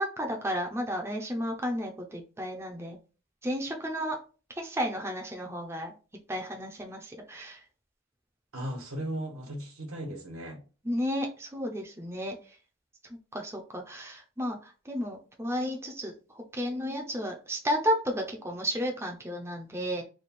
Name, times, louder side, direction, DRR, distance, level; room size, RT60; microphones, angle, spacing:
voice 1, 0.0-3.0 3.4-4.2 4.6-5.9 6.3-7.6 10.9-12.4 13.3-20.0, equal, 10° right, 0.5 m, -32 dB
voice 2, 8.5-10.6, right 1 dB, 90° right, 1.2 m, -36 dB
3.2 x 2.3 x 4.2 m
head